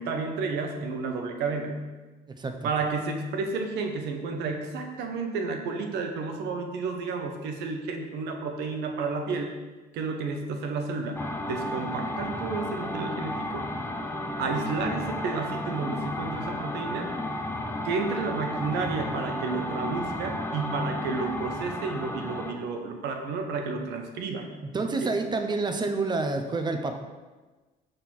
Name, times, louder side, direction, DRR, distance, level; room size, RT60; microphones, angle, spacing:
voice 1, 0.0-1.8 2.6-9.5 9.9-13.7 14.4-17.1 17.8-24.5 24.8-25.1, right 4 dB, 80° right, 4 dB, 1.1 m, -31 dB
voice 2, 2.4-2.7 24.7-26.9, right 3 dB, 25° right, 5 dB, 0.8 m, -28 dB
sound 1, 11.2-22.6, left 1 dB, 15° left, 0.6 m, -33 dB
6.6 x 3.8 x 6.0 m, 1.3 s
cardioid pair, 110°, 17 cm